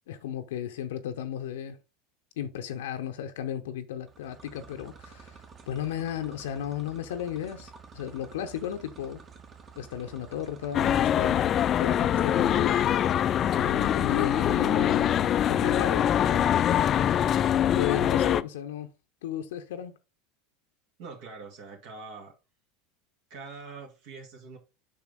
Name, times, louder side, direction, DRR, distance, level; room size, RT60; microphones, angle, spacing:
voice 1, 0.1-1.8 2.4-9.2 9.8-12.9 13.5-16.5 17.7-18.9 19.2-19.9, left 10 dB, 70° left, 0.7 m, -34 dB
sound 1, 4.0-17.4, right 5 dB, 30° right, 1.5 m, -50 dB
sound 2, 10.7-18.4, left 10 dB, 35° left, 0.4 m, -24 dB
voice 2, 21.0-22.3 23.3-24.6, right 4 dB, 60° right, 2.4 m, -43 dB
7.5 x 5.6 x 3.7 m
figure-of-eight pair, 80°, 0 cm